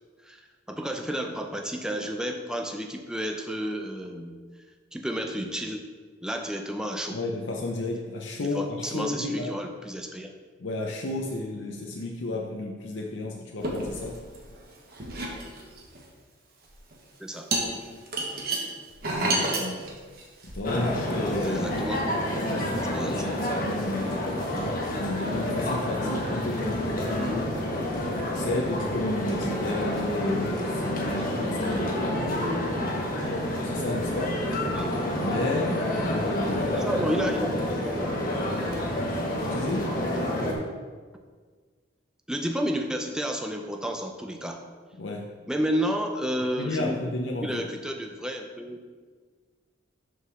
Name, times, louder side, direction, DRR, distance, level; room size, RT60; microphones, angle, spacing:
voice 1, 0.2-4.4 4.9-5.8 6.2-7.2 8.4-10.3 17.2-17.5 21.5-22.0 22.8-23.3 34.7-35.0 36.7-37.5 37.8-38.1 42.3-44.6 45.5-47.0 47.4-48.8, equal, 5° right, 3 dB, 0.5 m, -31 dB
voice 2, 7.1-9.5 10.6-14.1 19.1-19.9 20.4-21.7 23.6-24.1 24.9-27.6 28.3-32.4 33.6-34.5 35.2-37.1 39.5-40.0 45.0-45.3 46.6-47.7, left 2 dB, 75° left, -1 dB, 0.7 m, -32 dB
sound 1, 13.6-14.6 14.9-16.0 16.7-16.9 17.5-20.6, right 2 dB, 50° right, 1.3 m, -29 dB
sound 2, 20.6-40.5, left 1 dB, 45° left, 1.3 m, -28 dB
6.5 x 4.7 x 6.2 m, 1.5 s
head